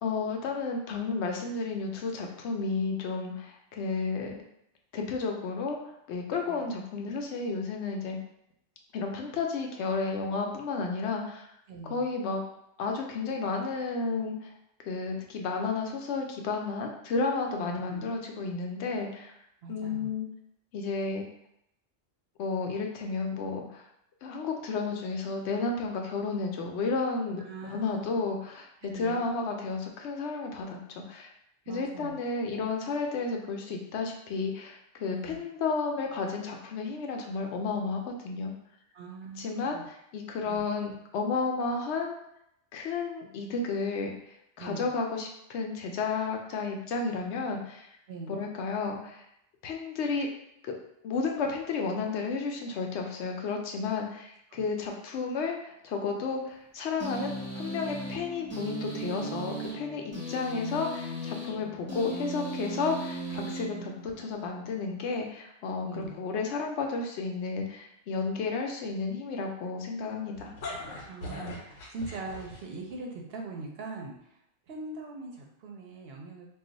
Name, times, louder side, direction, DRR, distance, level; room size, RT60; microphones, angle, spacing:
voice 1, 0.0-4.3 4.9-8.2 8.9-11.5 11.8-12.4 12.8-14.5 14.8-19.4 19.7-20.3 20.7-21.2 22.4-23.9 24.2-31.3 31.7-38.5 39.4-42.2 42.7-47.9 48.3-49.2 49.6-50.3 50.6-50.8 51.0-70.5, left 4 dB, 70° left, 2 dB, 0.8 m, -32 dB
voice 2, 11.7-12.0 17.7-18.1 19.6-20.1 27.4-28.1 28.8-29.2 31.7-32.1 35.1-35.4 38.9-39.8 40.4-40.6 44.6-44.9 48.1-48.4 54.5-54.6 60.6-60.8 65.8-66.1 71.1-74.1 74.7-76.5, right 3 dB, 60° right, 0 dB, 0.8 m, -41 dB
sound 1, 57.0-64.4, right 1 dB, 15° right, 0.9 m, -37 dB
sound 2, 70.3-72.9, left 1 dB, 90° left, 1.1 m, -40 dB
2.4 x 2.3 x 3.9 m, 0.76 s
omnidirectional pair, 1.3 m